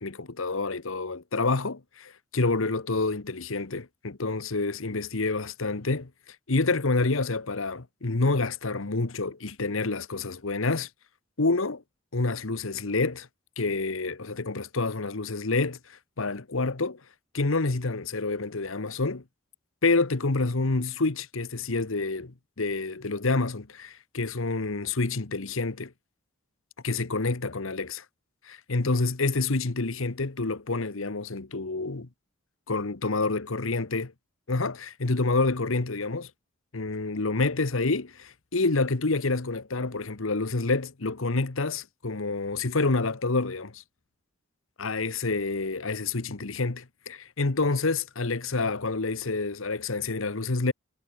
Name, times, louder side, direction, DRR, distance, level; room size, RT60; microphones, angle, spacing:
voice 1, 0.0-10.9 11.4-11.8 12.1-13.3 13.6-17.0 17.3-19.2 19.8-25.9 26.8-28.0 28.4-32.1 32.7-34.1 34.5-36.3 36.7-43.8 44.8-50.7, left 3 dB, 70° left, 1.2 m, -28 dB
head